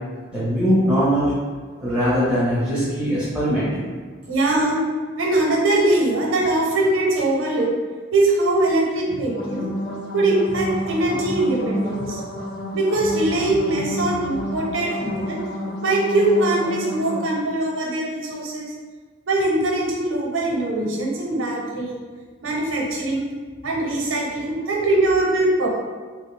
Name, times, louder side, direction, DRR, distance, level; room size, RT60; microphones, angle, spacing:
voice 1, 0.3-1.3 1.8-3.7, equal, 5° right, -11 dB, 1.0 m, -20 dB
voice 2, 4.3-4.8 5.2-7.7 8.1-9.7 10.1-12.2 12.7-15.4 15.8-18.7 19.3-22.0 22.4-23.3 23.6-25.7, right 2 dB, 90° right, -2 dB, 0.7 m, -21 dB
sound 1, 9.2-17.2, equal, 55° left, 0.6 m, -30 dB
3.1 x 2.4 x 3.2 m, 1.5 s
head